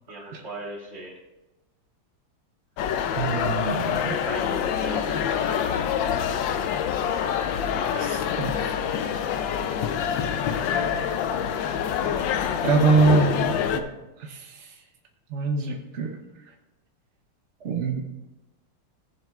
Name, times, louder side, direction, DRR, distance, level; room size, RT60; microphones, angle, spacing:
voice 1, 0.1-1.1 3.8-5.9, right 1 dB, 30° right, -4 dB, 3.0 m, -38 dB
sound 1, 2.8-13.8, left 8 dB, 70° left, 1.2 m, -26 dB
voice 2, 3.1-4.1 7.9-8.7 12.6-13.9 14.2-14.8 15.3-16.2 17.6-18.0, right 4 dB, 60° right, 1 dB, 0.7 m, -25 dB
18.5 x 7.4 x 2.4 m, 1.0 s
omnidirectional pair, 2.4 m